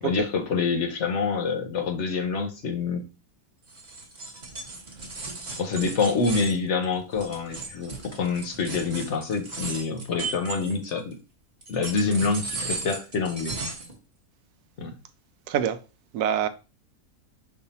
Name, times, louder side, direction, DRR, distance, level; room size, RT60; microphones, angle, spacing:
voice 1, 0.0-3.0 5.6-11.2 11.7-13.6 14.8-14.9, left 4 dB, 60° left, 0.9 m, -26 dB
sound 1, 3.7-11.1 11.6-13.9, right 3 dB, 35° right, 1.0 m, -36 dB
voice 2, 15.5-15.8 16.1-16.5, right 9 dB, 90° right, 1.1 m, -25 dB
5.4 x 2.4 x 4.1 m
omnidirectional pair, 1.6 m